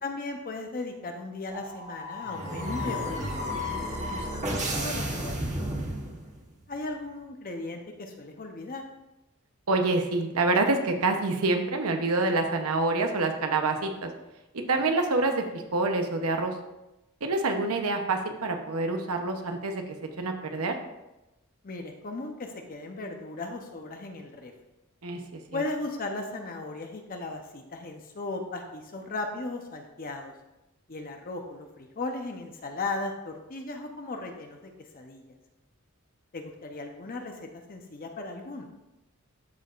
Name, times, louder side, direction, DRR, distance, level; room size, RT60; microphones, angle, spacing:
voice 1, 0.0-5.7 6.7-8.8 21.6-24.5 25.5-30.3 30.9-35.3 36.3-38.7, left 2 dB, 40° left, 3 dB, 0.7 m, -37 dB
sound 1, 1.5-6.5, equal, 35° right, 1.3 m, -32 dB
voice 2, 9.7-14.1 14.5-15.4 15.7-16.5 17.2-19.8 20.2-20.7 25.0-25.6, right 3 dB, 80° right, 4 dB, 0.8 m, -26 dB
13.0 x 4.7 x 2.4 m, 0.97 s
head